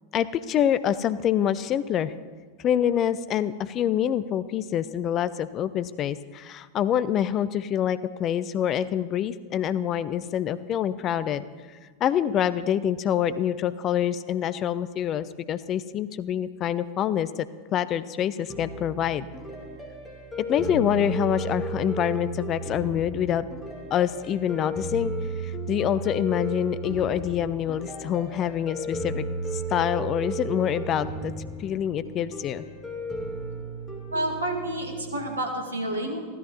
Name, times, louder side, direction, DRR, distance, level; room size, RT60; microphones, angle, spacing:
voice 1, 0.1-2.1 2.6-11.4 12.0-17.3 17.7-19.3 20.4-23.4 23.9-25.1 25.4-29.2 29.5-31.3 31.6-32.6, left 10 dB, 30° left, 15 dB, 0.5 m, -26 dB
sound 1, 18.5-35.2, right 1 dB, 5° left, 2.9 m, -34 dB
voice 2, 34.1-36.3, right 1 dB, 75° right, 1 dB, 2.4 m, -29 dB
15.5 x 13.0 x 4.2 m, 1.5 s
figure-of-eight pair, 90°, 0 cm